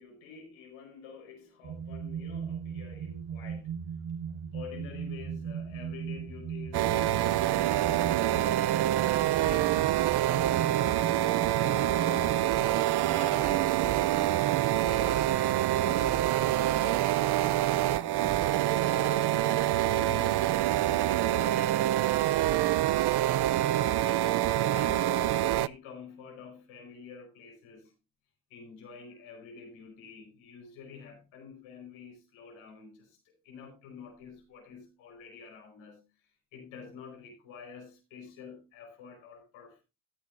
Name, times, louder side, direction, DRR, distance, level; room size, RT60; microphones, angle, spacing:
voice 1, 0.0-3.7 4.5-12.4 13.1-18.8 19.4-25.1 25.6-27.9 28.5-33.2 33.4-36.0 36.5-39.8, left 6 dB, 90° left, 4.8 m, -49 dB
sound 1, 1.6-21.5, right 7 dB, 80° right, 1.8 m, -40 dB
sound 2, 6.7-25.7, right 13 dB, 55° right, 0.6 m, -26 dB
14.0 x 10.5 x 2.6 m
supercardioid pair, 70°, 47 cm